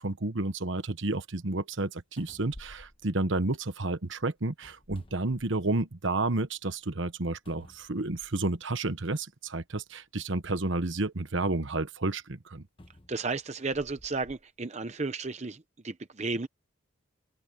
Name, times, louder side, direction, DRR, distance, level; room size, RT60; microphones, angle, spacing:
voice 1, 0.0-12.6, right 2 dB, 70° right, 1.2 m, -31 dB
sound 1, 1.8-1.9 2.2-3.9 4.5-6.0 6.4-6.5 7.4-8.6 9.5-9.6 12.8-14.4 15.1-15.3, left 1 dB, 25° left, 1.2 m, -53 dB
voice 2, 13.1-16.5, right 3 dB, 35° right, 0.7 m, -33 dB
open air
head